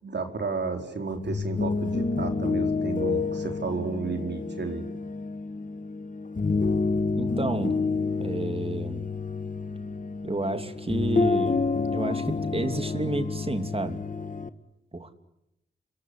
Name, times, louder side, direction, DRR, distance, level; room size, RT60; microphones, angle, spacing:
voice 1, 0.0-4.8, right 4 dB, 60° right, 5 dB, 4.3 m, -32 dB
sound 1, 1.1-14.5, left 4 dB, 40° left, 1.8 m, -29 dB
voice 2, 7.1-7.8 8.2-9.1 10.2-14.0 14.9-15.1, right 2 dB, 30° right, 9 dB, 2.8 m, -31 dB
27.0 x 21.5 x 9.8 m, 0.83 s
cardioid pair, 65°, 20 cm